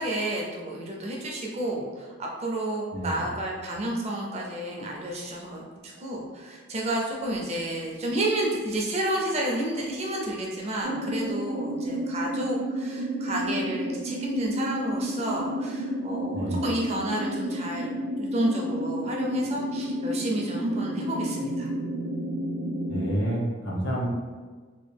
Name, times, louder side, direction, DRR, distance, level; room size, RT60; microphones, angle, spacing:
voice 1, 0.0-17.9 18.2-21.7, right 1 dB, 30° right, -1 dB, 0.5 m, -30 dB
voice 2, 2.9-3.2 16.3-16.7 22.9-24.0, right 1 dB, 75° left, -5 dB, 1.1 m, -29 dB
sound 1, 10.8-23.2, equal, 85° right, 0.3 m, -31 dB
3.0 x 2.4 x 3.3 m, 1.4 s
head